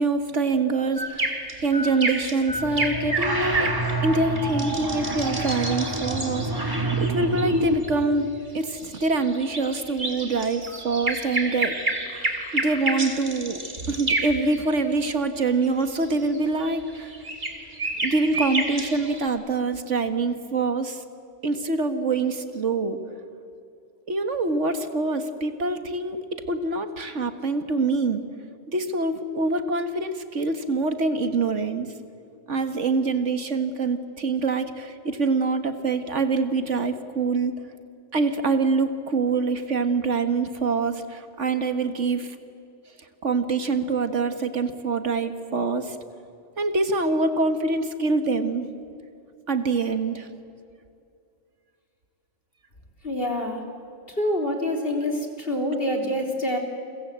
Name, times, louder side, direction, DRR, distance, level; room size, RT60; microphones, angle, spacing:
voice 1, 0.0-1.3 1.6-3.7 4.0-8.3 8.5-17.1 18.0-21.0 21.4-23.0 24.1-28.2 28.7-31.9 32.5-37.5 38.1-42.4 43.2-46.0 46.6-48.7 49.5-50.3, right 3 dB, 65° right, 9 dB, 1.9 m, -25 dB
sound 1, 1.0-7.9 8.8-14.6 15.7-19.3, right 2 dB, 40° right, 3.0 m, -30 dB
sound 2, 2.5-8.0, right 2 dB, 15° right, 2.1 m, -27 dB
voice 2, 53.0-53.6 54.1-56.6, left 1 dB, 45° left, 3 dB, 3.9 m, -26 dB
30.0 x 23.0 x 8.2 m, 2.5 s
omnidirectional pair, 1.3 m